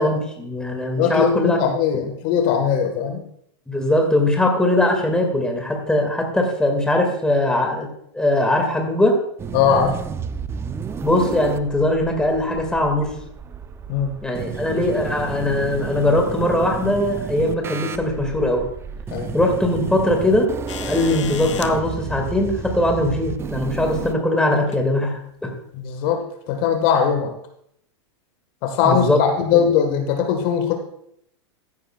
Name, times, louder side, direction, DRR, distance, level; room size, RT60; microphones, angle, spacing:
voice 1, 0.0-1.6 3.7-7.9 8.1-9.2 11.0-13.1 14.2-18.7 19.3-20.5 20.8-25.5 28.9-29.2 29.5-29.6, left 1 dB, 5° left, 2 dB, 2.0 m, -20 dB
voice 2, 1.0-3.2 9.5-9.9 13.9-14.1 19.1-19.3 25.7-27.3 28.6-30.7, left 7 dB, 50° left, 5 dB, 1.5 m, -20 dB
sound 1, 9.4-24.1, right 6 dB, 15° right, 0.5 m, -32 dB
sound 2, 20.7-21.7 23.1-23.2 24.6-24.8 25.8-25.9, left 9 dB, 85° left, 0.7 m, -34 dB
15.0 x 9.6 x 2.3 m, 0.72 s
hypercardioid pair, 115°, 15 cm